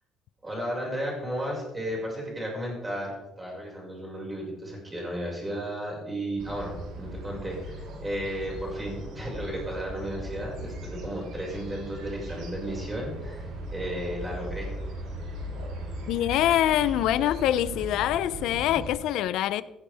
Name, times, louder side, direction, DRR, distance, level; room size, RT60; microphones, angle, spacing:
voice 1, 0.4-14.7, equal, 15° right, 6.0 m, -34 dB
sound 1, 6.4-18.9, right 1 dB, 70° right, 5.1 m, -38 dB
voice 2, 16.1-19.6, left 12 dB, 75° left, 0.7 m, -25 dB
16.5 x 16.0 x 3.6 m
cardioid pair, 155°, 0 cm